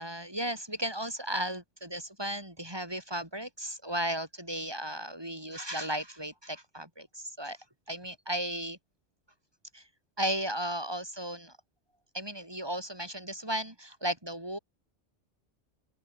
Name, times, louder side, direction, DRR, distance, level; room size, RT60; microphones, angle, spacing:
voice 1, 0.0-7.6 7.9-8.8 9.7-9.8 10.2-11.5 12.1-14.6, right 1 dB, 20° right, 5.4 m, -35 dB
open air
omnidirectional pair, 1.2 m